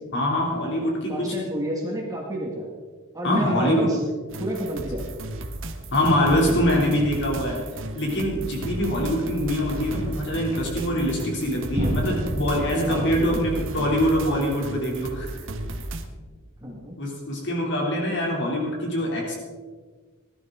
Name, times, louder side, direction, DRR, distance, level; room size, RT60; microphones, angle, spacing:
voice 1, 0.1-1.4 3.2-3.9 5.9-7.6 8.0-15.3 17.0-19.3, equal, 55° left, -2 dB, 3.3 m, -24 dB
voice 2, 1.1-2.7 3.1-4.0 4.4-5.0 12.9-13.4 16.6-17.0 17.4-17.5, right 1 dB, 15° right, -3 dB, 2.3 m, -30 dB
sound 1, 4.3-16.1, right 1 dB, 65° right, 1.5 m, -34 dB
sound 2, 11.7-15.7, right 1 dB, 35° right, 2.0 m, -31 dB
20.0 x 12.0 x 3.9 m, 1.5 s
head